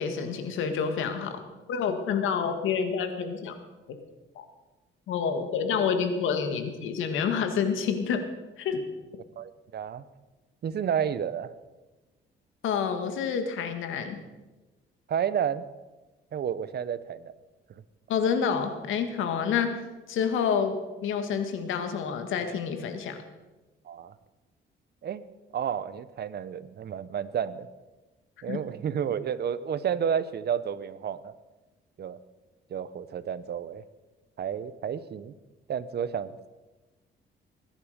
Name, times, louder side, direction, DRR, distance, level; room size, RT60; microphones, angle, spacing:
voice 1, 0.0-1.4 1.7-3.6 4.4-4.5 5.1-8.2 8.6-8.8 12.6-14.2 18.1-19.8 20.1-23.2 28.5-28.6, left 6 dB, 85° left, 7 dB, 1.9 m, -28 dB
voice 2, 9.4-10.0 10.6-11.5 15.1-15.6 16.3-17.3 23.8-24.1 25.0-25.2 25.5-27.7 28.4-31.3 32.0-32.2 32.7-33.8 34.4-35.3 35.7-36.3, right 8 dB, 55° right, 15 dB, 0.9 m, -31 dB
21.5 x 10.5 x 5.2 m, 1.1 s
cardioid pair, 90°, 20 cm